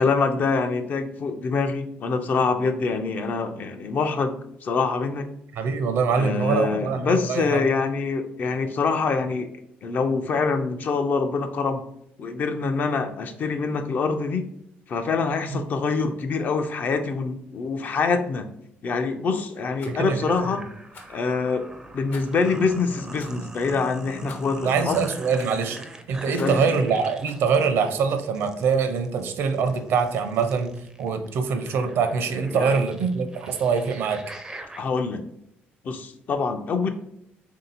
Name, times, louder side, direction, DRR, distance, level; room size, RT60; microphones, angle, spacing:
voice 1, 0.0-5.3 6.1-9.5 9.8-11.8 12.2-14.5 14.9-18.5 18.8-20.6 21.1-21.7 21.9-25.0 26.3-26.6 32.5-32.9 34.8-35.3 35.8-36.9, left 4 dB, 45° left, 7 dB, 0.4 m, -25 dB
voice 2, 5.5-7.6 15.5-15.6 19.9-20.5 24.6-25.8 26.1-30.7 31.0-34.2, right 5 dB, 70° right, 7 dB, 0.6 m, -24 dB
Rattle, 19.8-20.0 20.9-21.2 22.1-22.4 23.2-23.4 24.3-24.6 25.4-25.7 26.3-26.7 27.2-27.5, left 4 dB, 65° left, 1.0 m, -46 dB
sound 1, 19.9-34.8, right 2 dB, 15° right, 0.4 m, -42 dB
3.6 x 2.7 x 4.0 m, 0.75 s
cardioid pair, 125°, 4 cm